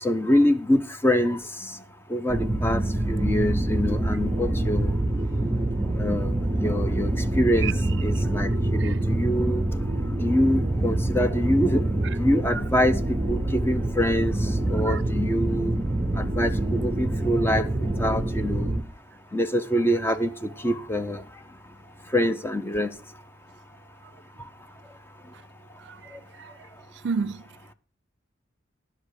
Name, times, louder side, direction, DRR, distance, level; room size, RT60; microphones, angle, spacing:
voice 1, 0.0-1.4 2.1-2.8 3.1-4.9 6.0-6.3 6.6-7.7 8.0-9.6 10.2-11.8 12.2-13.0 13.3-14.3 14.7-15.8 16.2-18.7 19.3-20.3 20.6-21.2 22.1-22.9, equal, 10° left, 0.7 m, -25 dB
sound 1, 2.3-18.8, right 1 dB, 20° right, 0.8 m, -26 dB
voice 2, 25.8-26.5 27.0-27.4, right 5 dB, 65° right, 0.4 m, -31 dB
10.5 x 5.9 x 6.4 m
head